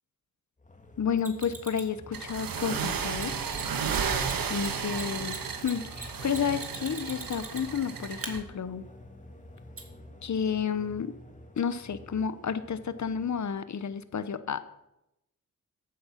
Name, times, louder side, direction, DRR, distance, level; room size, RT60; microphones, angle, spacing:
sound 1, 0.6-13.7, left 1 dB, 20° left, 1.8 m, -48 dB
voice 1, 1.0-3.4 4.5-8.8 10.2-11.1 11.6-14.6, left 7 dB, 55° left, 13 dB, 1.1 m, -31 dB
Mechanisms, 1.2-1.9 3.1-3.2 3.5-3.6 3.9-7.8 8.2-8.3 9.8-9.9, right 4 dB, 40° right, 2.4 m, -40 dB
sound 2, 2.1-8.4, right 6 dB, 85° right, 1.4 m, -33 dB
14.5 x 8.5 x 5.9 m, 0.87 s
cardioid pair, 70°, 34 cm